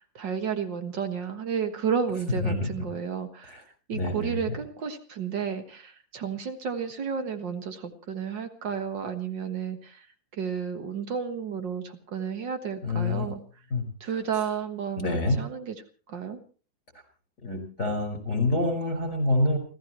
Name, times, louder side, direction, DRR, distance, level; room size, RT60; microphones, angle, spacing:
voice 1, 0.2-3.6 3.9-10.1 10.3-13.4 14.0-15.8 16.1-16.4, right 7 dB, 70° right, 8 dB, 2.1 m, -32 dB
voice 2, 3.9-4.5 12.8-13.3 13.7-13.8 15.0-15.4 17.4-19.6, left 2 dB, 40° left, 5 dB, 5.9 m, -27 dB
30.0 x 14.0 x 3.1 m, 0.37 s
omnidirectional pair, 2.0 m